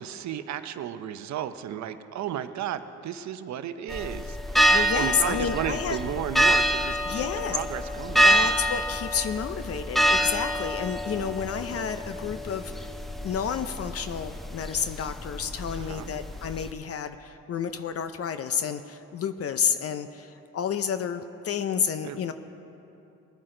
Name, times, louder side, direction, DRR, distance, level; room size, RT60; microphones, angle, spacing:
voice 1, 0.0-4.7 5.0-8.3 15.8-16.1 22.0-22.3, right 10 dB, 65° right, 11 dB, 0.7 m, -34 dB
sound 1, 3.9-16.7, equal, ahead, 0.5 m, -26 dB
voice 2, 4.7-6.0 7.1-7.6 8.2-12.9 13.2-22.3, left 7 dB, 50° left, 10 dB, 0.6 m, -30 dB
20.0 x 9.1 x 3.8 m, 2.9 s
cardioid pair, 90°, 30 cm